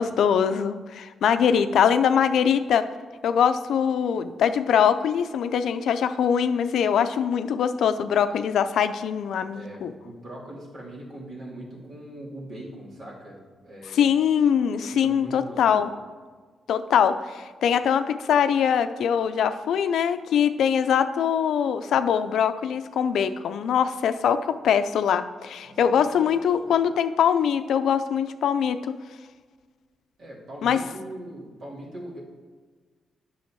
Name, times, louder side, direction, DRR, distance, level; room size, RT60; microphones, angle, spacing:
voice 1, 0.0-2.9 3.2-9.9 13.9-15.9 16.7-28.9 30.6-30.8, left 8 dB, 80° left, 10 dB, 0.5 m, -22 dB
voice 2, 9.5-14.0 15.0-15.9 25.6-26.2 26.6-26.8 30.2-32.2, right 1 dB, 65° right, -4 dB, 2.9 m, -41 dB
9.5 x 6.4 x 4.6 m, 1.5 s
cardioid pair, 100°, 0 cm